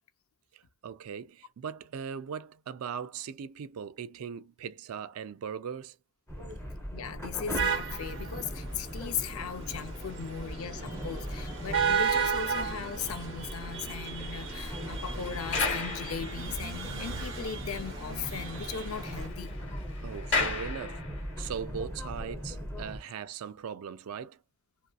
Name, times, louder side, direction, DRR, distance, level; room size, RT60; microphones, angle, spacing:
voice 1, 0.5-6.0 20.0-21.0 21.4-24.4, right 7 dB, 75° right, 0.4 m, -39 dB
sound 1, 6.3-23.0, equal, 15° left, 0.7 m, -40 dB
voice 2, 6.9-19.6, left 7 dB, 70° left, 0.5 m, -38 dB
sound 2, 7.6-19.3, right 6 dB, 55° right, 0.9 m, -35 dB
sound 3, 13.4-17.1 17.4-17.5 17.9-18.0 18.2-21.5 22.2-22.4, left 4 dB, 55° left, 1.0 m, -36 dB
2.7 x 2.4 x 2.2 m
head